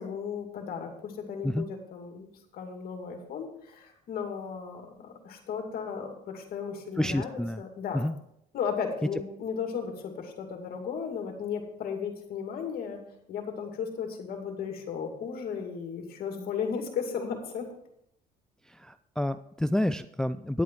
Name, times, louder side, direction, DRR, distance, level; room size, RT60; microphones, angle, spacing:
voice 1, 0.0-2.3 2.5-8.0 8.5-13.0 13.3-17.6, left 6 dB, 60° left, 3 dB, 2.4 m, -35 dB
voice 2, 7.0-7.6 7.9-8.2 18.7-20.6, left 1 dB, 5° left, 12 dB, 0.3 m, -29 dB
10.5 x 8.5 x 4.6 m, 0.74 s
cardioid pair, 110°, 17 cm